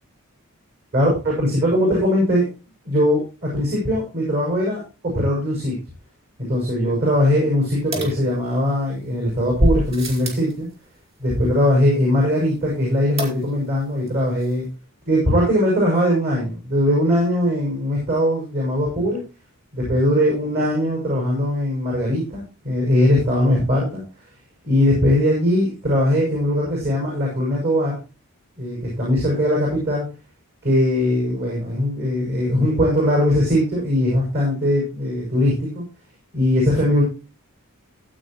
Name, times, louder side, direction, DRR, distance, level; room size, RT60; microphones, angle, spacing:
voice 1, 0.9-2.5 2.8-5.8 6.5-10.7 11.2-14.7 15.1-19.2 19.7-24.0 24.6-28.0 28.6-30.0 30.6-35.8 36.3-37.0, left 1 dB, 50° right, -2 dB, 6.6 m, -20 dB
sound 1, 7.9-8.9 9.6-10.5 13.2-13.8 14.1-14.2 14.4-14.5, equal, 30° right, 3.7 m, -25 dB
15.5 x 8.5 x 3.1 m, 0.31 s
head